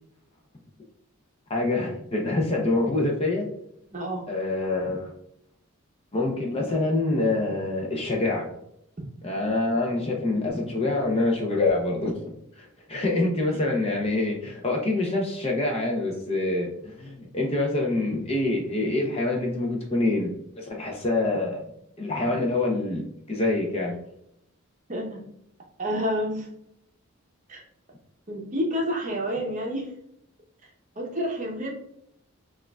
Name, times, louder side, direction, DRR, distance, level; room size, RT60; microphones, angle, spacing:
voice 1, 1.5-3.5 4.3-5.1 6.1-8.5 9.2-21.7 22.0-24.0, left 2 dB, 25° left, 0 dB, 0.6 m, -26 dB
voice 2, 3.9-4.3 24.9-25.2 25.8-26.5 27.5-27.6 28.3-29.9 31.0-31.7, equal, 35° right, 0 dB, 0.7 m, -29 dB
6.2 x 2.4 x 2.2 m, 0.75 s
head